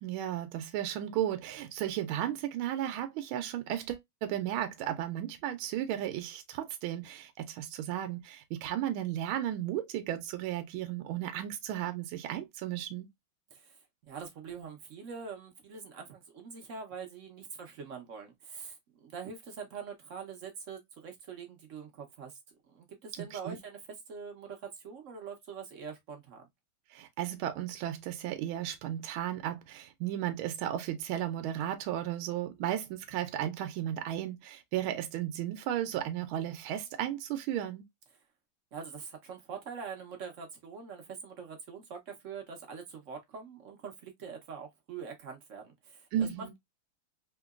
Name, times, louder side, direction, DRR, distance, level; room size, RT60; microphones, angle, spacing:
voice 1, 0.0-13.1 23.2-23.6 26.9-37.8 46.1-46.5, right 11 dB, 80° right, 1.4 m, -34 dB
voice 2, 14.1-22.4 22.7-23.8 24.1-26.5 38.7-46.1 46.4-46.6, right 6 dB, 60° right, 0.8 m, -44 dB
3.7 x 2.9 x 2.3 m
omnidirectional pair, 2.3 m